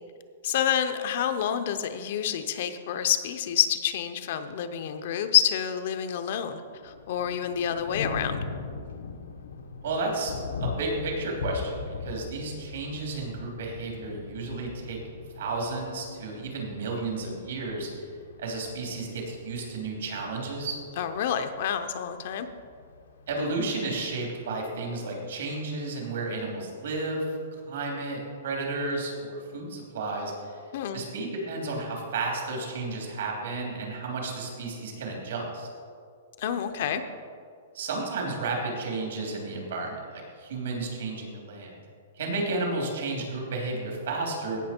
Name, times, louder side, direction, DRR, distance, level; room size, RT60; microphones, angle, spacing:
voice 1, 0.4-8.4 21.0-22.5 30.7-31.0 36.4-37.0, left 9 dB, 50° left, 8 dB, 0.7 m, -28 dB
Thunder, 6.7-24.7, left 4 dB, 85° left, 1.1 m, -40 dB
voice 2, 9.8-10.3 10.6-15.0 15.3-17.9 18.4-20.8 23.3-27.2 27.6-30.6 30.9-35.7 36.8-37.0 37.7-41.8 42.2-44.6, right 3 dB, 70° right, -1 dB, 3.2 m, -32 dB
16.5 x 6.1 x 4.4 m, 2.2 s
hypercardioid pair, 165°, 0 cm